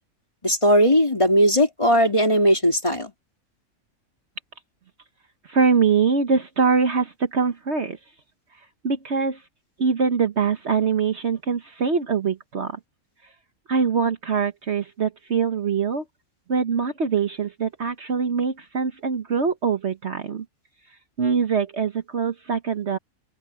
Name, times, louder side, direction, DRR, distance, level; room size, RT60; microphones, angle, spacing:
voice 1, 0.4-3.1, equal, 20° left, 3.1 m, -18 dB
voice 2, 5.4-8.0 8.8-9.4 9.8-12.8 13.7-16.0 16.5-20.4 21.2-23.0, right 5 dB, 50° right, 1.4 m, -23 dB
open air
omnidirectional pair, 1.5 m